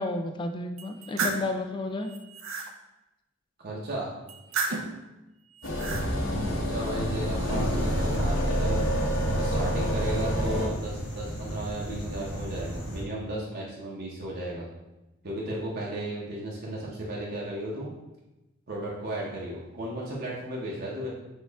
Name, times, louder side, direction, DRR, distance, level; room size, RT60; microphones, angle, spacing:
voice 1, 0.0-2.1 6.2-6.5, left 2 dB, 25° left, 5 dB, 0.3 m, -32 dB
sound 1, 0.8-1.5 2.0-2.7 4.3-5.0 5.6-6.1, right 3 dB, 85° right, 0.6 m, -32 dB
voice 2, 3.6-4.1 6.4-8.9 9.4-14.7 15.2-17.9 18.7-21.1, right 1 dB, 50° right, -4 dB, 0.9 m, -35 dB
sound 2, 5.6-10.7, equal, 70° left, 0.9 m, -27 dB
sound 3, 7.4-13.0, equal, 55° left, 1.4 m, -36 dB
6.3 x 2.4 x 3.4 m, 0.99 s
head